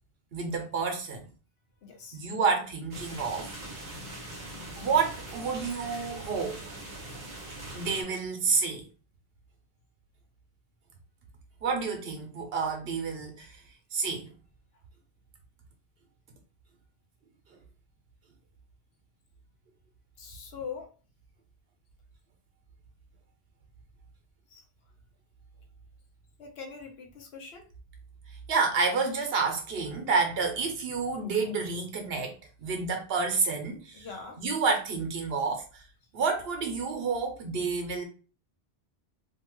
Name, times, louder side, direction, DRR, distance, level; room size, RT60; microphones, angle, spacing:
voice 1, 0.3-1.3 2.1-4.0 4.8-6.7 7.7-8.8 11.6-13.6 13.9-14.3 28.5-34.1 34.4-35.8 36.1-38.0, right 4 dB, 75° right, 1.0 m, -29 dB
voice 2, 1.8-2.2 20.2-20.9 24.5-24.6 26.4-27.7 33.9-34.4, left 5 dB, 80° left, 1.0 m, -42 dB
sound 1, 2.9-8.0, right 1 dB, 50° right, 1.0 m, -42 dB
2.7 x 2.3 x 3.0 m
omnidirectional pair, 1.0 m